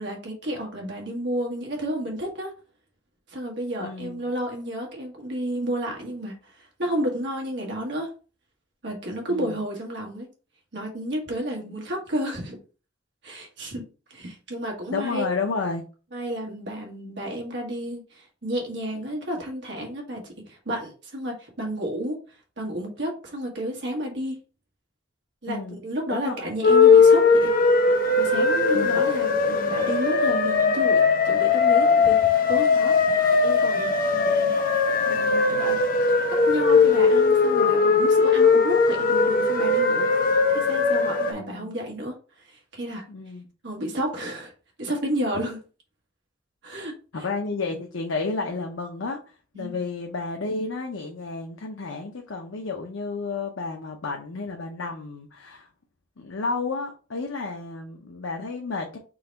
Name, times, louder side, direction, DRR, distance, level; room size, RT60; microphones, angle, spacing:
voice 1, 0.0-2.5 3.3-8.1 8.8-10.3 10.7-12.6 13.2-13.8 14.1-15.3 16.1-22.2 22.6-24.4 25.4-27.8 28.2-32.9 33.4-34.6 35.0-35.8 36.1-36.2 36.5-40.1 40.5-42.2 42.4-43.0 43.6-44.5 44.8-45.6 46.6-47.3 49.5-49.8, right 1 dB, 60° right, 0 dB, 1.5 m, -31 dB
voice 2, 3.8-4.3 9.3-9.6 14.9-15.8 25.5-25.8 26.1-26.5 28.7-29.0 41.4-41.7 43.1-43.5 47.1-49.2 49.5-55.7 56.2-59.0, left 3 dB, 80° left, 2 dB, 0.7 m, -31 dB
sound 1, 26.6-41.3, left 4 dB, 45° left, 0.7 m, -19 dB
3.9 x 2.9 x 4.5 m, 0.36 s
head